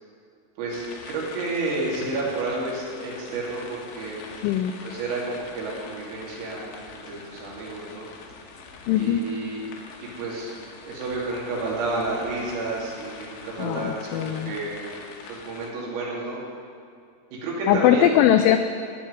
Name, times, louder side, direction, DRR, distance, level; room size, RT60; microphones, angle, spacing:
voice 1, 0.6-4.2 4.8-8.1 8.9-9.7 10.0-10.5 10.8-14.8 15.3-16.4 17.3-18.1, right 2 dB, 85° right, -5 dB, 5.5 m, -30 dB
sound 1, 0.7-15.7, left 5 dB, 70° left, 2.8 m, -44 dB
voice 2, 4.4-4.7 8.9-9.2 13.6-14.6 17.7-18.6, left 11 dB, 90° left, 8 dB, 2.7 m, -20 dB
15.0 x 5.6 x 9.5 m, 2.4 s
omnidirectional pair, 6.0 m